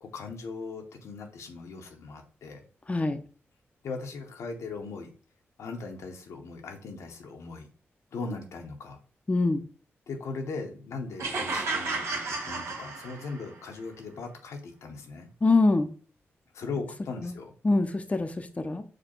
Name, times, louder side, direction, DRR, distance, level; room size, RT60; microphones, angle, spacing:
voice 1, 0.0-2.6 3.8-5.1 5.6-7.7 8.1-9.0 10.1-15.3 16.5-17.5, left 4 dB, 85° left, 4 dB, 0.8 m, -39 dB
voice 2, 2.9-3.2 9.3-9.6 15.4-15.9 17.2-17.3 17.6-18.8, left 3 dB, 30° left, 8 dB, 0.6 m, -24 dB
sound 1, 11.2-13.5, right 3 dB, 85° right, 1.4 m, -32 dB
5.0 x 2.2 x 4.4 m, 0.39 s
cardioid pair, 60°, 5 cm